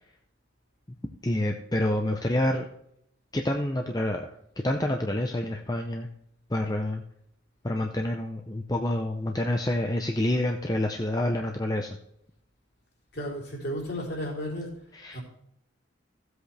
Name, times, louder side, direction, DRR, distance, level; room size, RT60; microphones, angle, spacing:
voice 1, 1.2-2.7 3.3-4.3 4.6-6.1 6.5-7.0 7.6-12.0 14.9-15.2, left 1 dB, 20° left, 3 dB, 0.7 m, -28 dB
voice 2, 13.1-14.8 15.1-15.2, equal, 55° left, -1 dB, 3.7 m, -33 dB
15.5 x 8.0 x 3.4 m, 0.73 s
head